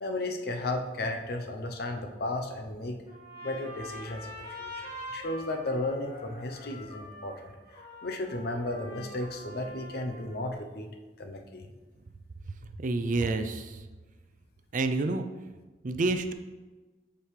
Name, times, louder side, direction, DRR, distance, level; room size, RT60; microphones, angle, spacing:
voice 1, 0.0-3.0 3.4-4.8 5.1-7.5 8.0-10.9 11.2-11.7, left 2 dB, 60° left, 4 dB, 0.7 m, -34 dB
Trumpet, 3.1-10.4, equal, 40° left, 1.8 m, -44 dB
voice 2, 12.8-13.8 14.7-15.3 15.8-16.3, right 3 dB, 45° right, 8 dB, 0.4 m, -28 dB
7.3 x 5.1 x 3.3 m, 1.2 s
head